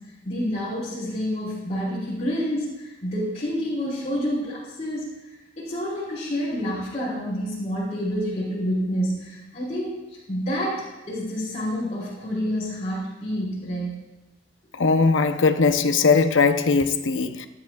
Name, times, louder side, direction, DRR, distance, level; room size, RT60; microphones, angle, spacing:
voice 1, 0.2-13.9, equal, 35° left, 4.3 m, -28 dB
voice 2, 14.8-17.5, left 4 dB, 70° left, 0.7 m, -20 dB
26.0 x 10.0 x 2.3 m
head